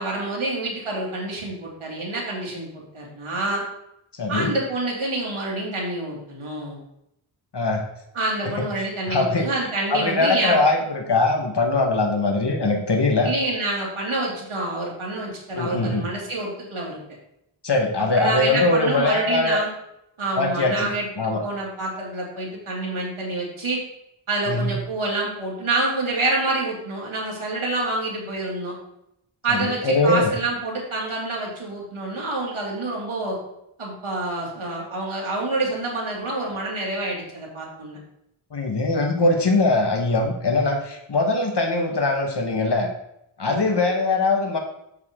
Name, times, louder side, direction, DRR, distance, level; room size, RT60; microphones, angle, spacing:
voice 1, 0.0-3.6 4.3-6.8 8.1-10.6 13.2-17.0 18.0-19.7 20.2-23.8 24.3-28.8 29.4-33.4 33.8-38.0 43.4-43.6, right 2 dB, 75° right, -3 dB, 2.7 m, -27 dB
voice 2, 4.2-4.6 7.5-7.8 8.4-9.5 9.9-13.3 15.5-16.0 17.6-19.6 20.4-21.4 24.5-24.7 29.5-30.3 38.5-42.9 43.4-44.6, left 2 dB, 55° left, 3 dB, 1.5 m, -22 dB
7.5 x 6.7 x 3.7 m, 0.79 s
wide cardioid pair, 70°, 49 cm